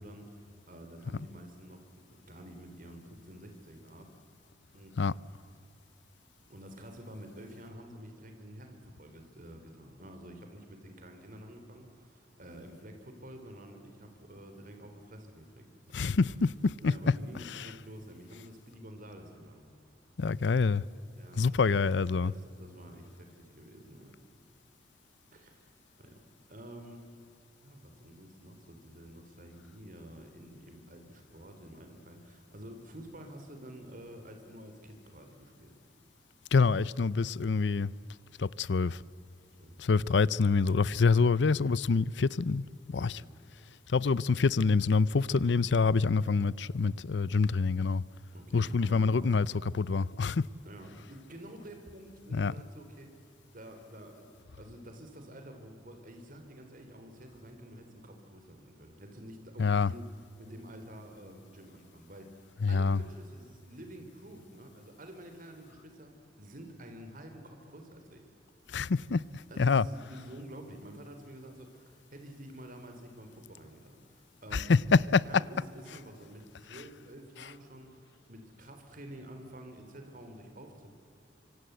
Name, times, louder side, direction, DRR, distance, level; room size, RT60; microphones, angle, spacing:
voice 1, 0.0-4.1 4.7-5.2 6.5-15.7 16.0-16.2 16.8-19.7 21.2-24.1 25.3-25.7 26.0-26.2 26.5-27.1 27.6-35.7 39.6-40.1 43.0-43.3 48.3-49.4 50.6-53.1 53.5-60.0 60.4-68.2 69.5-74.7 75.2-80.9, right 1 dB, 50° right, 3.5 m, -49 dB
voice 2, 15.9-16.3 16.6-16.9 20.2-20.8 21.4-22.3 36.5-37.9 38.4-39.0 39.8-43.2 43.9-48.0 48.5-49.5 49.7-50.4 52.3-52.5 59.6-59.9 62.6-63.0 68.7-69.2 69.6-69.9 74.5-75.4, left 4 dB, 75° left, 0.6 m, -26 dB
25.5 x 25.0 x 8.0 m
head